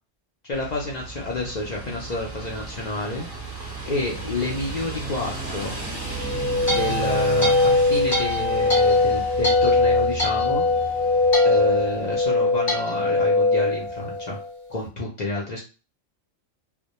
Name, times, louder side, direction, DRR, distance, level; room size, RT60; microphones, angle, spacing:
voice 1, 0.4-3.3 3.9-5.8 6.7-10.6 11.4-14.4 14.7-15.6, left 2 dB, 75° left, -3 dB, 0.4 m, -29 dB
sound 1, 0.5-12.2, right 4 dB, 15° right, 0.5 m, -34 dB
sound 2, 6.1-14.5, left 3 dB, 25° left, 0.7 m, -21 dB
2.1 x 2.1 x 2.8 m, 0.33 s
omnidirectional pair, 1.4 m